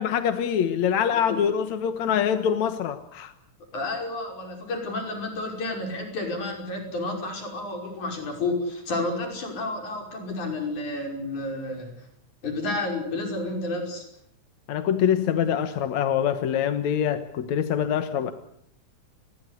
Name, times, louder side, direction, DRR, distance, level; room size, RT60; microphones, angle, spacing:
voice 1, 0.0-3.3 14.7-18.3, left 8 dB, 70° left, 9 dB, 2.5 m, -24 dB
voice 2, 3.7-11.9 12.4-14.1, left 2 dB, 90° left, 3 dB, 7.0 m, -30 dB
28.0 x 21.0 x 8.4 m, 0.70 s
omnidirectional pair, 3.3 m